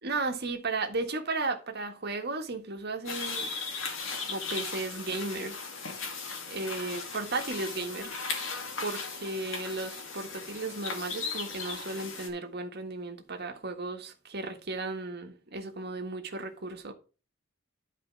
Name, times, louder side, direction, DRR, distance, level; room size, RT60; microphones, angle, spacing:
voice 1, 0.0-3.5 4.3-5.6 6.5-8.1 8.8-16.9, right 3 dB, 55° right, 1.7 m, -35 dB
sound 1, 3.0-12.3, left 4 dB, 75° left, 2.4 m, -37 dB
11.5 x 4.9 x 4.6 m
head